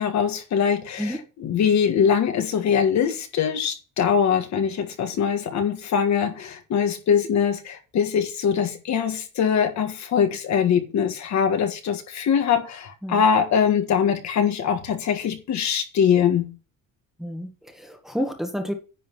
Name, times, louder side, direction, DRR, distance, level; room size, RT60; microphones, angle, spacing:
voice 1, 0.0-16.6, left 7 dB, 55° left, 1.8 m, -22 dB
voice 2, 17.2-18.7, equal, ahead, 1.5 m, -30 dB
10.0 x 3.8 x 7.3 m
cardioid pair, 150°, 32 cm